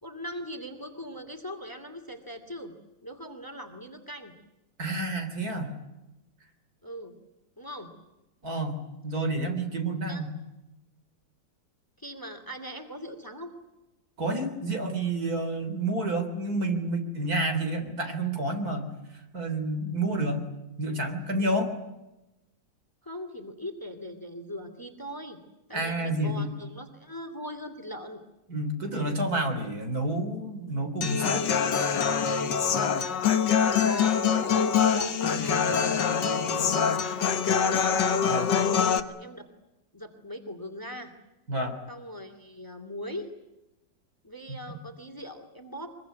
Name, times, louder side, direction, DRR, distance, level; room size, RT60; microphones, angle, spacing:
voice 1, 0.0-2.7 3.0-4.3 6.8-7.2 7.6-7.9 10.1-10.2 12.0-13.5 21.4-21.6 23.0-25.4 25.7-28.2 32.6-33.1 33.6-38.0 38.5-39.5 39.9-41.1 41.9-43.3 44.2-45.9, equal, 10° left, 7 dB, 2.5 m, -40 dB
voice 2, 4.8-5.7 8.4-8.8 9.0-10.3 14.2-18.8 19.3-20.4 20.8-21.7 25.7-26.5 28.5-31.5 38.2-38.5 41.5-41.8, right 2 dB, 55° right, 6 dB, 4.2 m, -29 dB
Human voice / Acoustic guitar, 31.0-39.0, left 7 dB, 75° left, 2.0 m, -24 dB
24.0 x 23.0 x 9.5 m, 0.98 s
omnidirectional pair, 1.9 m